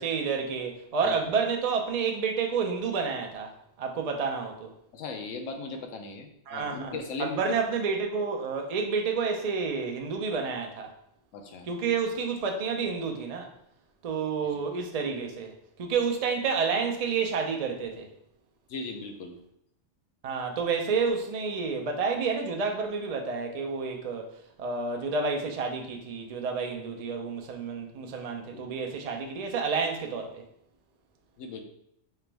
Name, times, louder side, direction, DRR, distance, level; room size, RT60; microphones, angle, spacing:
voice 1, 0.0-3.5 3.8-4.7 6.5-10.9 11.7-13.5 14.0-15.5 15.8-18.1 20.2-24.3 24.6-30.4, right 5 dB, 70° right, 0.3 m, -29 dB
voice 2, 1.0-1.3 4.9-7.5 11.3-11.7 14.5-14.6 18.7-19.4 28.5-28.7 31.4-31.6, left 3 dB, 85° left, 1.0 m, -38 dB
3.5 x 2.9 x 3.3 m
omnidirectional pair, 1.3 m